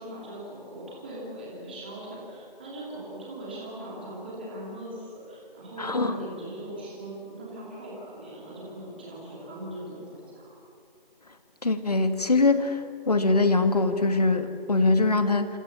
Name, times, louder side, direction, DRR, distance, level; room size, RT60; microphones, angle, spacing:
voice 1, 0.0-10.6, right 1 dB, 10° right, -5 dB, 3.0 m, -40 dB
voice 2, 5.8-6.1 11.6-12.8 13.1-15.5, left 3 dB, 40° left, 8 dB, 2.0 m, -22 dB
27.5 x 26.5 x 7.1 m, 2.5 s
figure-of-eight pair, 180°, 29 cm